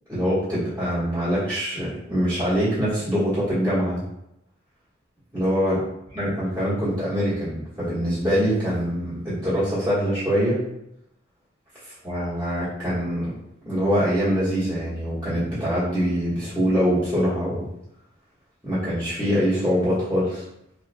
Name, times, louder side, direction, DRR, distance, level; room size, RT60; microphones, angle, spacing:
voice 1, 0.1-4.0 5.3-5.8 6.1-10.6 11.8-13.3 13.6-17.7 18.6-20.4, equal, 15° right, -13 dB, 1.4 m, -24 dB
3.4 x 2.4 x 3.3 m, 0.82 s
head